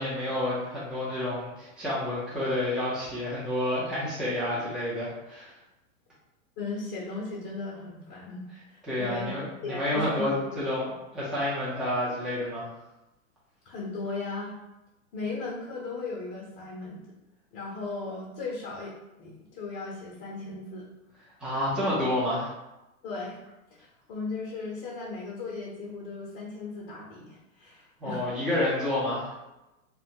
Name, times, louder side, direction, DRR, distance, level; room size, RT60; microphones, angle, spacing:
voice 1, 0.0-5.5 8.9-12.7 21.4-22.5 28.0-29.3, left 1 dB, ahead, -9 dB, 0.6 m, -29 dB
voice 2, 6.6-9.3 9.6-10.6 13.6-14.5 15.1-17.0 17.5-20.9 23.0-23.4 23.7-28.2, left 3 dB, 40° left, -4 dB, 0.7 m, -37 dB
2.7 x 2.3 x 2.7 m, 0.97 s
hypercardioid pair, 125°, 42 cm